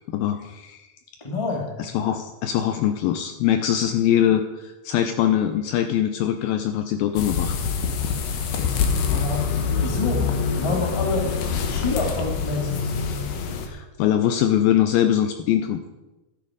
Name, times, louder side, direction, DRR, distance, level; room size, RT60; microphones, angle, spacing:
voice 1, 0.1-0.8 1.8-7.6 13.7-15.8, left 10 dB, 80° left, 8 dB, 2.2 m, -22 dB
voice 2, 1.2-1.6 9.1-9.4 9.8-10.2 10.5-11.3 11.7-12.9, left 3 dB, 10° left, 0 dB, 1.3 m, -27 dB
sound 1, 7.2-13.7, left 6 dB, 65° left, 2.5 m, -25 dB
12.5 x 12.0 x 5.1 m, 1.1 s
omnidirectional pair, 4.7 m